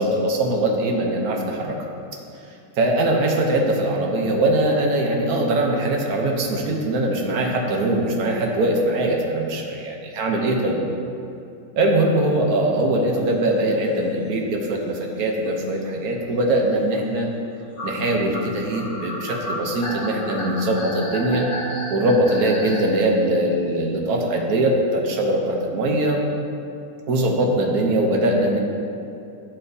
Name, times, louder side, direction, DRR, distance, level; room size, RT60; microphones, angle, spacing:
voice 1, 0.0-1.8 2.8-10.8 11.8-17.3 17.8-21.5 21.9-26.2 27.1-28.6, right 1 dB, 70° right, 1 dB, 1.2 m, -21 dB
sound 1, 13.8-13.9 14.2-14.4 15.2-15.3 15.5-15.6 16.2-16.4 17.0-17.1 17.8-22.9, left 1 dB, 65° left, 1.5 m, -32 dB
10.0 x 4.3 x 2.7 m, 2.7 s
omnidirectional pair, 1.7 m